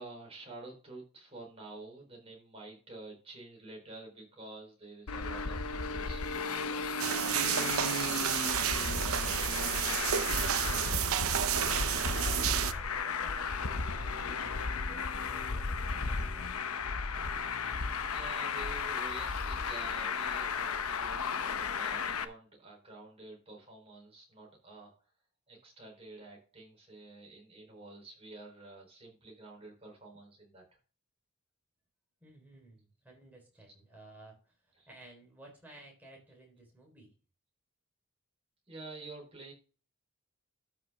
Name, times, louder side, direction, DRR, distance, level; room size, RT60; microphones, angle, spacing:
voice 1, 0.0-8.2 8.5-9.4 18.1-24.9 25.5-30.6 34.8-34.9 38.7-39.5, right 2 dB, 25° right, 0 dB, 4.0 m, -49 dB
Traffic noise roadway noise, 5.1-22.2, left 4 dB, 90° left, 0.9 m, -34 dB
sound 1, 7.0-12.7, right 9 dB, 80° right, 0.8 m, -31 dB
voice 2, 10.5-16.7 32.2-37.1, right 1 dB, 10° right, -1 dB, 4.1 m, -55 dB
12.5 x 6.0 x 3.6 m, 0.37 s
head